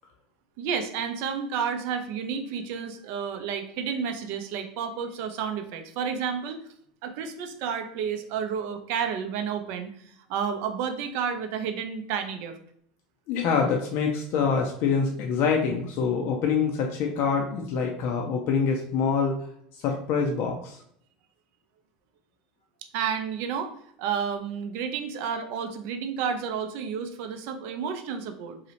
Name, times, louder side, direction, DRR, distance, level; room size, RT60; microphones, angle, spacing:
voice 1, 0.6-6.6 7.0-12.6 22.9-23.7 24.0-28.6, right 7 dB, 60° right, 7 dB, 0.4 m, -31 dB
voice 2, 13.3-19.3 19.7-20.8, left 5 dB, 55° left, 1 dB, 0.4 m, -25 dB
2.7 x 2.0 x 2.8 m, 0.68 s
hypercardioid pair, 95°, 4 cm